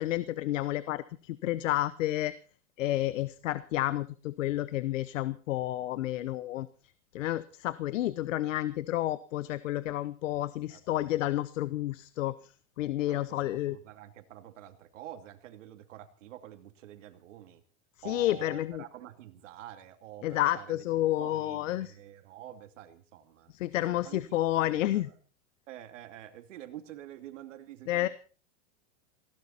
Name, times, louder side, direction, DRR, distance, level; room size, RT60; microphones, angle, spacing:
voice 1, 0.0-2.3 2.8-6.7 7.1-12.3 12.8-13.8 18.0-18.8 20.2-21.9 23.6-25.1 27.9-28.1, left 14 dB, 85° left, 16 dB, 1.0 m, -30 dB
voice 2, 13.0-17.6 18.0-20.8 21.2-23.5 23.9-24.2 24.6-25.1 25.7-28.1, right 12 dB, 75° right, 8 dB, 2.6 m, -48 dB
19.0 x 16.5 x 4.3 m, 0.38 s
supercardioid pair, 155°, 37 cm